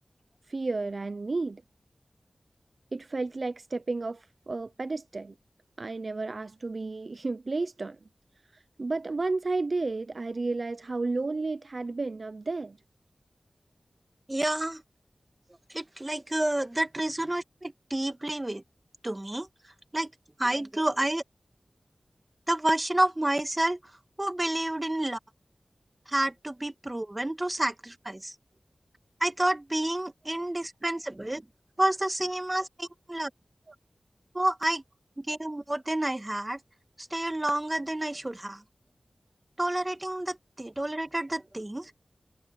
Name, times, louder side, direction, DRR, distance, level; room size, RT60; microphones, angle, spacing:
voice 1, 0.5-1.6 2.9-5.3 5.8-8.0 8.5-12.8 33.7-33.8, right 3 dB, 55° right, 0.4 m, -32 dB
voice 2, 14.3-14.8 15.7-18.6 19.0-19.5 19.9-20.1 20.4-21.2 22.5-23.8 24.2-25.2 26.1-28.4 29.2-31.4 31.8-33.3 34.3-34.8 35.2-36.6 37.0-38.6 39.6-41.9, right 1 dB, 25° right, 1.7 m, -29 dB
wide cardioid pair, 65°, 0 cm